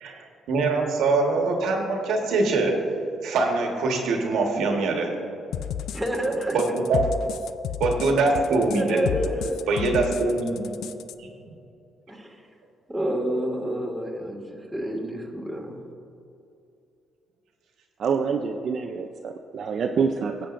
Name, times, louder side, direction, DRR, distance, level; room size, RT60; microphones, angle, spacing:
voice 1, 0.0-2.8 3.2-5.1 6.5-7.0 7.8-9.0 9.7-10.7, right 3 dB, 85° right, 1 dB, 1.4 m, -23 dB
sound 1, 5.5-11.1, left 9 dB, 80° left, 0.3 m, -32 dB
voice 2, 5.9-6.6 8.7-9.6 12.1-12.4 12.9-15.8, right 1 dB, 5° right, -1 dB, 2.0 m, -29 dB
voice 3, 18.0-20.5, right 6 dB, 60° right, 3 dB, 0.5 m, -26 dB
16.0 x 7.9 x 2.6 m, 2.6 s
cardioid pair, 90°, 0 cm